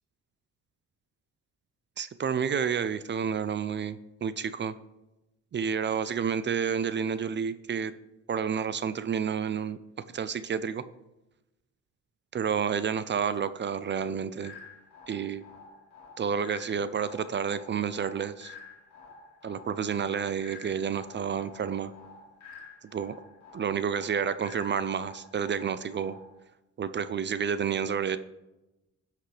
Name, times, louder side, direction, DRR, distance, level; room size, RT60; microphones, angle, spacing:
voice 1, 2.0-4.8 5.5-7.9 8.3-9.8 10.1-10.8 12.3-14.5 15.1-15.4 16.2-18.5 19.4-21.9 22.8-23.1 23.5-26.2 26.8-28.2, right 7 dB, 40° right, 14 dB, 0.5 m, -30 dB
sound 1, 14.4-26.4, left 4 dB, 65° left, 2.2 m, -50 dB
17.0 x 5.9 x 3.3 m, 0.99 s
cardioid pair, 90°, 30 cm